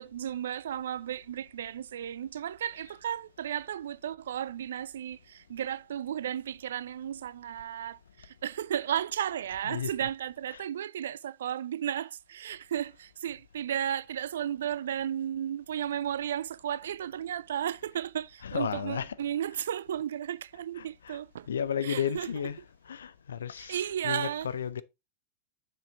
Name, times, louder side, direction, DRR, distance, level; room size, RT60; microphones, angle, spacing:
voice 1, 0.0-21.5 21.8-22.3 23.6-24.5, right 10 dB, 60° right, 0.3 m, -34 dB
voice 2, 9.6-10.1 10.5-10.6 18.4-19.2 20.8-21.2 21.5-24.8, left 8 dB, 65° left, 0.5 m, -34 dB
7.1 x 5.7 x 3.8 m
figure-of-eight pair, 90°, 0 cm